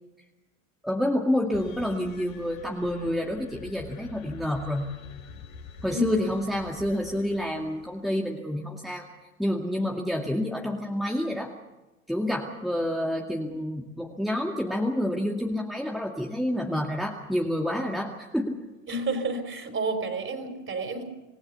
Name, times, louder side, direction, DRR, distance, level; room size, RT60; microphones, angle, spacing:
voice 1, 0.8-4.9 5.8-9.1 9.4-11.5 12.1-18.6, left 1 dB, ahead, 0 dB, 2.1 m, -28 dB
sound 1, 1.5-8.1, left 5 dB, 85° left, 5.8 m, -46 dB
voice 2, 18.9-21.0, right 2 dB, 30° right, 6 dB, 5.1 m, -30 dB
27.5 x 16.0 x 6.9 m, 1.1 s
hypercardioid pair, 85°, 41 cm